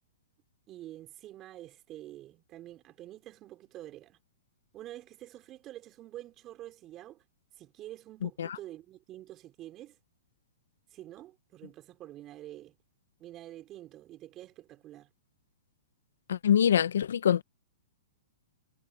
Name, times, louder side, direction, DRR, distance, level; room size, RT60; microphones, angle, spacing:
voice 1, 0.7-4.2 4.7-7.2 7.5-10.0 10.9-12.8 13.2-15.1, right 14 dB, 30° right, 4.7 m, -47 dB
voice 2, 16.3-17.4, left 9 dB, 80° left, 1.1 m, -24 dB
hypercardioid pair, 135°, 0 cm